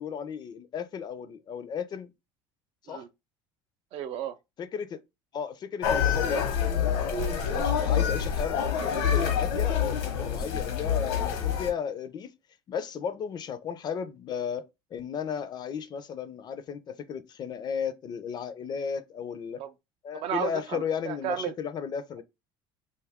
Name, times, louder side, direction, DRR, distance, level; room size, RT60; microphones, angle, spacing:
voice 1, 0.0-2.1 2.9-3.0 4.6-5.0 5.3-6.4 6.7-12.3 12.7-19.6 20.0-22.2, left 7 dB, 40° left, 0.4 m, -34 dB
voice 2, 3.9-4.4 19.6-19.7 20.1-21.5, right 10 dB, 55° right, 0.4 m, -33 dB
sound 1, 5.8-11.7, left 7 dB, 85° left, 0.9 m, -27 dB
2.6 x 2.3 x 3.4 m
supercardioid pair, 115°, 12 cm